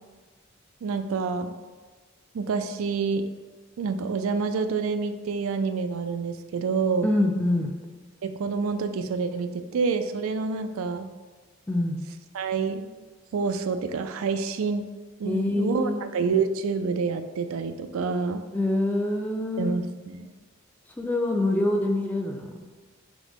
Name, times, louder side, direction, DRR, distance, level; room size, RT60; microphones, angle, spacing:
voice 1, 0.8-1.5 2.3-3.2 3.8-7.1 8.2-11.1 12.3-12.9 13.3-14.8 15.2-18.4 19.6-20.3, right 5 dB, 80° right, 9 dB, 0.4 m, -27 dB
voice 2, 7.0-7.7 11.7-12.0 15.2-16.0 18.5-19.7 21.0-22.5, left 1 dB, 10° left, 2 dB, 0.3 m, -25 dB
6.0 x 2.1 x 3.5 m, 1.4 s
head